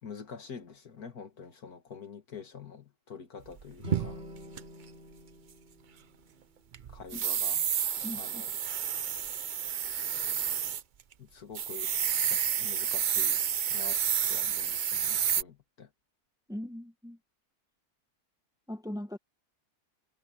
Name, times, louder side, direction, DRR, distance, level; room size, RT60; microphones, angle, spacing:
voice 1, 0.0-4.2 6.9-7.6 8.1-8.5 11.2-11.9 12.3-13.4 13.7-14.0 14.3-15.9, left 6 dB, 65° left, 2.3 m, -46 dB
sound 1, 3.6-4.6 6.7-10.8 11.1-11.2 11.6-15.4, right 8 dB, 80° right, 0.4 m, -30 dB
sound 2, 3.8-7.1, left 1 dB, 40° right, 3.0 m, -47 dB
voice 2, 8.0-8.4 16.5-17.2 18.7-19.2, left 1 dB, ahead, 1.4 m, -39 dB
omnidirectional pair, 1.7 m